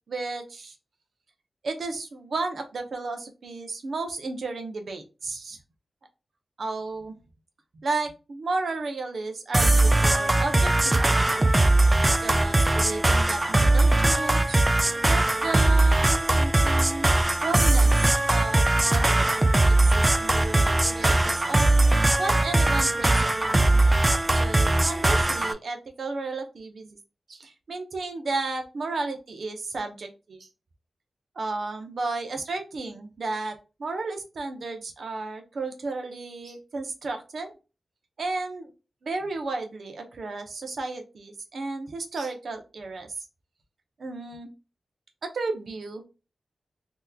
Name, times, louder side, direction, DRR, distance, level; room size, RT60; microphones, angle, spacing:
voice 1, 0.1-0.8 1.6-5.6 6.6-7.2 7.7-11.4 12.2-14.6 15.0-19.3 19.7-21.7 22.2-23.8 24.3-27.0 27.3-30.5 31.3-37.5 38.2-38.7 39.0-43.2 44.0-44.5 45.2-46.0, right 3 dB, 70° right, 5 dB, 0.8 m, -33 dB
sound 1, 9.5-25.5, right 2 dB, 25° right, 0.4 m, -20 dB
3.5 x 2.9 x 2.3 m, 0.30 s
cardioid pair, 70°, 0 cm